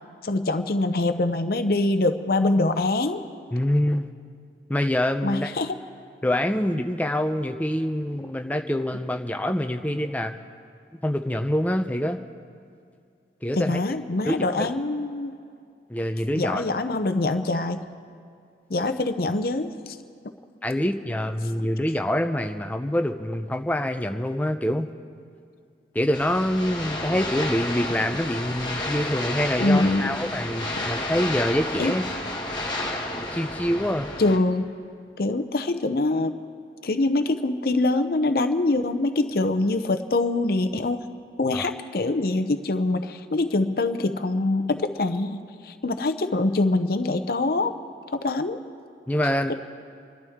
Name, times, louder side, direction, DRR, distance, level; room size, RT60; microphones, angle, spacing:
voice 1, 0.2-3.2 5.2-5.8 13.6-15.4 16.3-17.8 18.7-20.0 29.6-30.1 30.8-30.9 31.8-32.0 34.2-34.6 35.2-36.4 36.8-41.0 41.4-47.7 48.1-48.6 49.5-49.6, left 2 dB, 55° left, 9 dB, 0.7 m, -24 dB
voice 2, 3.5-4.0 4.7-5.5 6.2-10.4 11.0-12.2 13.4-13.8 14.3-14.7 15.9-16.6 20.6-24.9 25.9-32.0 33.3-34.1 41.5-41.7 49.1-49.5, left 1 dB, 10° left, 6 dB, 0.6 m, -25 dB
sound 1, 26.1-34.4, left 1 dB, 25° left, 1.6 m, -31 dB
29.0 x 12.0 x 3.6 m, 2.3 s
head